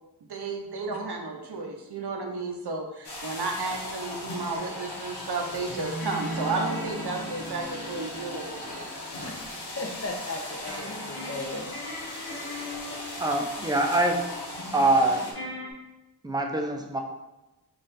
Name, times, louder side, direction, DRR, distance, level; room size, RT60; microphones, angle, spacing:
voice 1, 0.3-8.8, right 3 dB, 80° right, 2 dB, 0.7 m, -33 dB
sound 1, 3.0-15.3, left 1 dB, 85° left, 0.9 m, -38 dB
sound 2, 5.8-9.9 10.6-15.7, equal, 70° left, 1.2 m, -39 dB
voice 2, 9.8-11.8, left 2 dB, 35° left, 1 dB, 0.7 m, -36 dB
voice 3, 13.2-14.3 14.7-15.3 16.2-17.0, right 2 dB, 10° right, 2 dB, 0.5 m, -24 dB
3.7 x 2.5 x 4.1 m, 1.0 s
wide cardioid pair, 60°, 39 cm